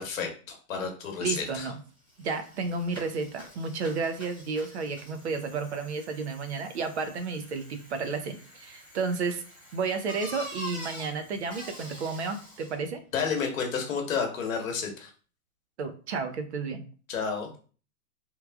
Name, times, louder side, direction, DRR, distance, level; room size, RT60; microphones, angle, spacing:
voice 1, 0.0-1.7 13.1-15.1 17.1-17.5, left 6 dB, 60° left, 3 dB, 1.0 m, -31 dB
voice 2, 1.2-1.8 2.2-9.4 9.7-13.0 15.8-16.8, right 4 dB, 50° right, 8 dB, 0.5 m, -32 dB
Bicycle, 1.7-1.8 2.1-12.9, left 1 dB, 10° right, 0.9 m, -46 dB
3.1 x 2.3 x 2.2 m, 0.39 s
hypercardioid pair, 150°, 45 cm